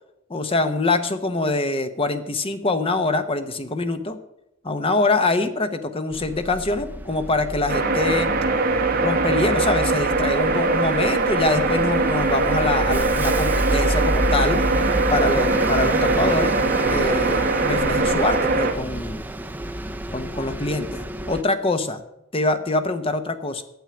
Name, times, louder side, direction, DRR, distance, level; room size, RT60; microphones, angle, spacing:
voice 1, 0.3-4.2 4.6-8.3 9.0-14.6 15.1-16.5 16.9-19.2 20.1-22.0 22.3-23.6, left 2 dB, 25° left, 9 dB, 0.9 m, -24 dB
Bus, 6.1-21.4, right 1 dB, 10° right, 0.5 m, -29 dB
sound 1, 7.7-18.7, right 3 dB, 45° right, 1.4 m, -22 dB
9.2 x 7.3 x 8.7 m, 0.86 s
head